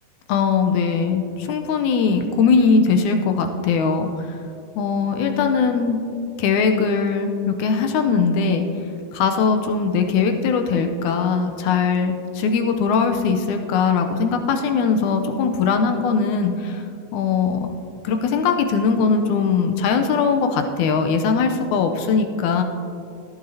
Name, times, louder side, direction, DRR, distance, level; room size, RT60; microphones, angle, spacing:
voice 1, 0.3-4.3 4.8-6.0 6.4-8.7 9.1-16.8 17.1-17.6 18.0-22.6, left 5 dB, 85° left, 5 dB, 2.1 m, -20 dB
17.5 x 11.0 x 2.8 m, 2.5 s
omnidirectional pair, 3.5 m